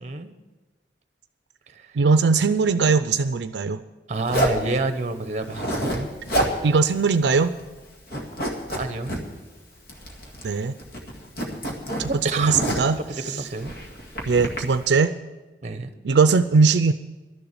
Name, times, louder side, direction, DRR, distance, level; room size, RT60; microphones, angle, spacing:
voice 1, 0.0-0.3 1.7-1.9 4.1-6.1 8.8-9.1 12.1-12.6 13.3-13.8 15.6-15.9, right 3 dB, 40° right, 9 dB, 0.8 m, -28 dB
voice 2, 2.0-3.8 6.4-7.6 10.4-10.7 12.0-12.1 12.3-13.5 14.3-15.1 16.0-16.9, right 4 dB, 80° right, 11 dB, 0.4 m, -20 dB
Zipper (clothing), 4.3-4.7 5.4-6.0 6.3-6.6 6.9-7.0 7.4-7.8 8.1-9.2 9.9-10.5 10.8-13.0 13.6-14.6, right 1 dB, 60° left, 2.0 m, -27 dB
12.5 x 7.0 x 9.5 m, 1.2 s
head